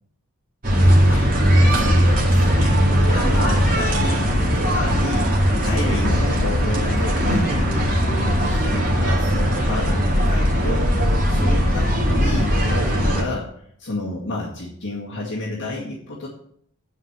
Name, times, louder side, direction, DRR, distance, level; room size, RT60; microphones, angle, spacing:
sound 1, 0.6-13.2, equal, 40° right, 2.2 m, -19 dB
voice 1, 1.7-5.3 5.6-13.5 13.8-16.3, left 2 dB, 55° left, -4 dB, 2.0 m, -30 dB
9.7 x 4.8 x 7.3 m, 0.67 s
head